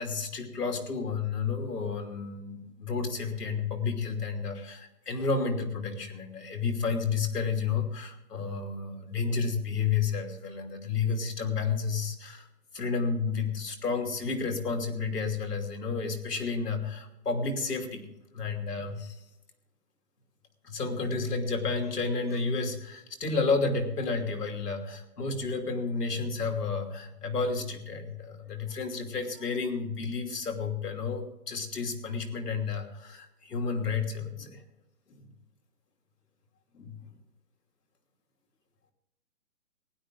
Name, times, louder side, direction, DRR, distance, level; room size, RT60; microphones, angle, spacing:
voice 1, 0.0-12.4 12.7-18.0 18.3-19.2 20.6-34.6 35.1-35.3 36.7-37.0, left 4 dB, 85° left, 4 dB, 3.0 m, -31 dB
19.0 x 11.0 x 3.8 m, 0.93 s
hypercardioid pair, 170°, 46 cm